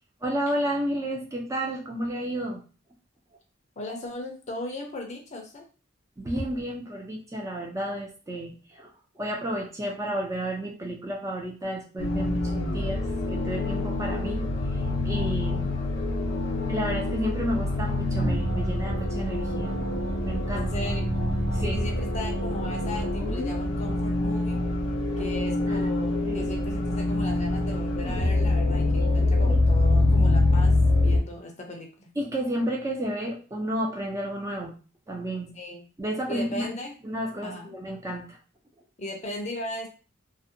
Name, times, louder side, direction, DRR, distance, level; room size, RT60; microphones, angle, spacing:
voice 1, 0.2-2.6 6.2-8.9 9.2-13.0 13.3-14.4 15.0-15.7 16.7-19.7 20.2-20.7 21.5-21.8 25.2-25.3 25.7-25.8 26.3-26.4 29.4-29.7 32.2-34.7 35.1-35.5 36.0-36.7 37.0-38.4, right 1 dB, 15° right, -1 dB, 0.4 m, -31 dB
voice 2, 3.8-5.6 20.5-21.1 21.6-24.6 25.2-32.1 35.5-35.9 36.3-36.9 37.4-37.7 39.0-39.9, left 1 dB, 35° left, 2 dB, 0.5 m, -37 dB
sound 1, 12.0-31.2, left 2 dB, 85° left, 0.7 m, -25 dB
2.5 x 2.1 x 2.6 m, 0.36 s
head